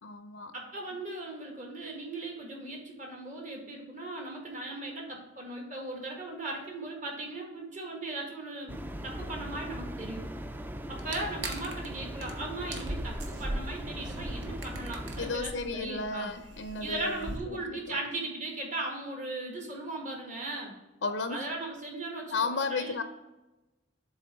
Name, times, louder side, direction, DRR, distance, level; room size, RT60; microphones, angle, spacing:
voice 1, 0.0-0.5 15.2-18.0 21.0-21.5 22.3-23.0, left 4 dB, 90° left, 9 dB, 0.5 m, -34 dB
voice 2, 0.5-8.8 9.0-10.3 10.9-16.3 16.8-20.7 21.3-23.0, right 2 dB, 45° right, 0 dB, 1.6 m, -38 dB
sound 1, 8.7-15.4, equal, 10° right, 0.3 m, -39 dB
sound 2, 11.0-11.9 12.2-12.3 12.6-17.4, right 1 dB, 80° right, 1.0 m, -39 dB
7.7 x 3.6 x 4.2 m, 1.0 s
head